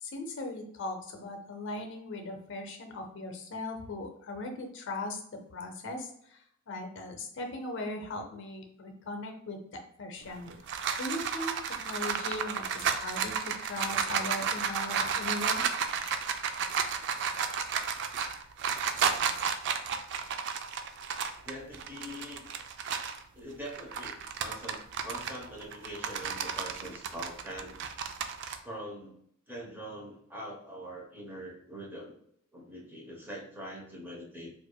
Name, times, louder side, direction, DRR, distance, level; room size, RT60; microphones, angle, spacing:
voice 1, 0.0-10.5 11.0-15.7, left 2 dB, 60° left, 4 dB, 0.6 m, -39 dB
sound 1, 10.3-23.2 23.7-28.6, right 6 dB, 60° right, 0.4 m, -32 dB
voice 2, 21.4-22.5 23.3-27.8 28.6-29.2 29.5-32.1 32.5-34.5, equal, 10° right, -3 dB, 0.8 m, -43 dB
4.7 x 2.5 x 2.2 m, 0.68 s
head